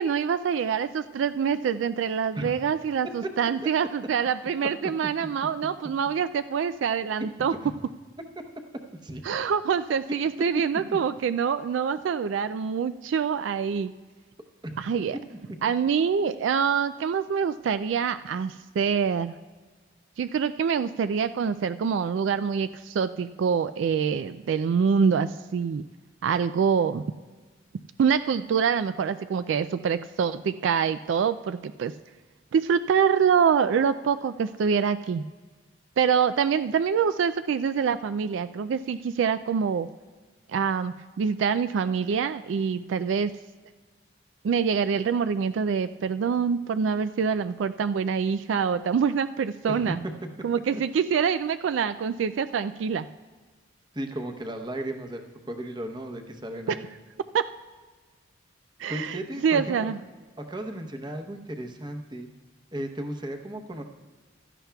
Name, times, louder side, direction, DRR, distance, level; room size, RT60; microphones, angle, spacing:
voice 1, 0.0-7.5 9.3-13.9 14.8-15.2 15.6-19.4 20.2-25.8 26.2-27.0 28.0-31.9 32.5-35.3 36.0-39.9 40.5-43.3 44.4-50.0 50.4-53.1 56.7-56.8 57.3-57.5 58.8-60.0, right 6 dB, 75° right, 12 dB, 0.3 m, -25 dB
voice 2, 53.9-55.2 55.5-56.9 58.9-59.9 60.4-62.3 62.7-63.8, right 1 dB, 20° right, 5 dB, 0.8 m, -35 dB
16.0 x 12.5 x 2.3 m, 1.4 s
head